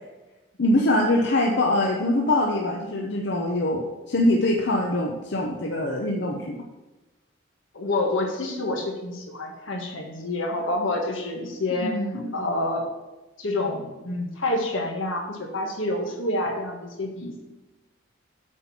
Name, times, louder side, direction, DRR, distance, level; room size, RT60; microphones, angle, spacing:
voice 1, 0.6-6.6 11.8-12.4, left 1 dB, 60° left, 0 dB, 0.8 m, -23 dB
voice 2, 7.7-12.0 12.3-12.8 13.4-17.4, left 2 dB, 80° left, 2 dB, 1.6 m, -28 dB
8.1 x 4.5 x 7.1 m, 1.1 s
head